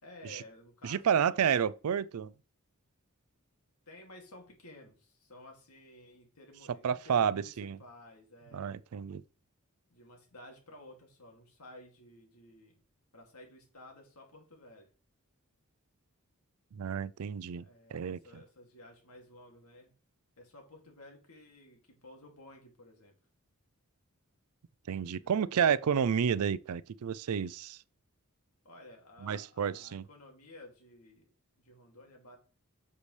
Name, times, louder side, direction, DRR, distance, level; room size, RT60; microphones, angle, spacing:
voice 1, 0.0-1.4 3.9-8.7 9.9-12.8 13.1-14.9 17.6-19.9 20.4-23.2 25.1-25.4 28.6-31.3 31.6-32.4, left 1 dB, 85° left, 2.5 m, -54 dB
voice 2, 0.8-2.3 6.8-7.8 8.5-9.2 16.8-17.6 17.9-18.2 24.9-27.8 29.2-30.0, right 7 dB, 80° right, 0.4 m, -30 dB
8.0 x 6.8 x 3.3 m
head